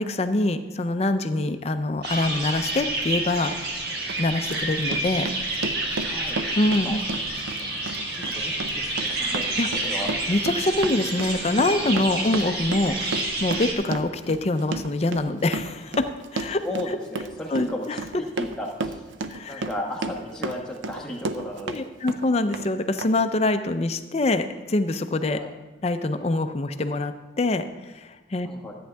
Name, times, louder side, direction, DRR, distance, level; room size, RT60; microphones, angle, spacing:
voice 1, 0.0-3.5 4.2-5.3 6.6-7.0 9.6-9.7 10.3-16.1 16.3-16.6 17.5-18.0 19.3-19.7 21.7-25.4 25.8-28.5, left 2 dB, 30° left, 9 dB, 0.5 m, -25 dB
sound 1, 2.0-13.7, right 2 dB, 55° right, 1.5 m, -29 dB
Run, 3.5-3.6 4.1-21.8 22.1-22.7 23.0-23.1, right 3 dB, 75° right, 0.6 m, -33 dB
voice 2, 6.1-6.4 6.8-7.0 8.1-9.5 9.7-10.1 16.6-19.0 19.5-21.8 25.3-25.5 28.4-28.8, left 1 dB, 5° left, -2 dB, 1.2 m, -34 dB
13.5 x 8.7 x 3.4 m, 1.1 s
head